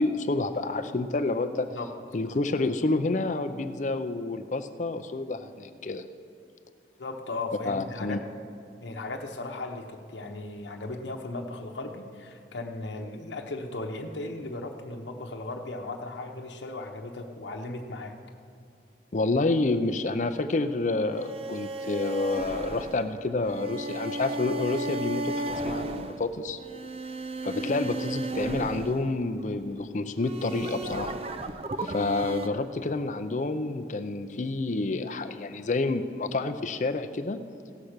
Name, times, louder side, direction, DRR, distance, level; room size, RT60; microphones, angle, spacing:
voice 1, 0.0-1.7 2.1-6.0 7.7-8.2 19.1-26.6 27.4-31.1 31.8-37.4, left 3 dB, 45° left, 9 dB, 0.5 m, -29 dB
voice 2, 7.0-8.2 8.8-18.1, left 2 dB, 85° left, 2 dB, 0.9 m, -36 dB
sound 1, 21.1-29.6 30.2-32.5, right 2 dB, 35° right, 0.5 m, -34 dB
16.5 x 5.8 x 6.6 m, 2.5 s
head